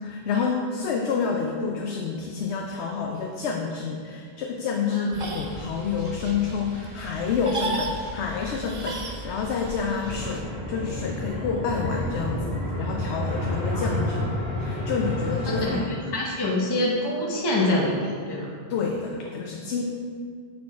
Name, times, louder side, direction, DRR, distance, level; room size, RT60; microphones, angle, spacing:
voice 1, 0.0-15.8 18.7-19.8, left 5 dB, 85° left, 1 dB, 0.9 m, -29 dB
sound 1, 5.1-10.4, right 2 dB, 35° right, 0.6 m, -35 dB
sound 2, 10.0-15.8, left 1 dB, 65° right, 2.0 m, -29 dB
voice 2, 13.7-14.1 15.4-18.5, left 1 dB, 25° left, -3 dB, 0.7 m, -26 dB
6.2 x 4.6 x 4.1 m, 2.1 s
omnidirectional pair, 1.1 m